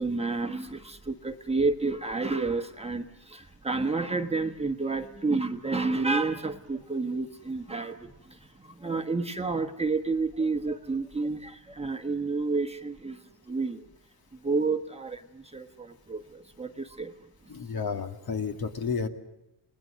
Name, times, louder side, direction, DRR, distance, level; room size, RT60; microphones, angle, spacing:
voice 1, 0.0-13.9 14.4-17.1, right 3 dB, 15° right, 5 dB, 1.3 m, -30 dB
voice 2, 17.5-19.1, left 5 dB, 55° left, 6 dB, 2.3 m, -31 dB
29.5 x 20.0 x 6.4 m, 0.90 s
wide cardioid pair, 170°, 44 cm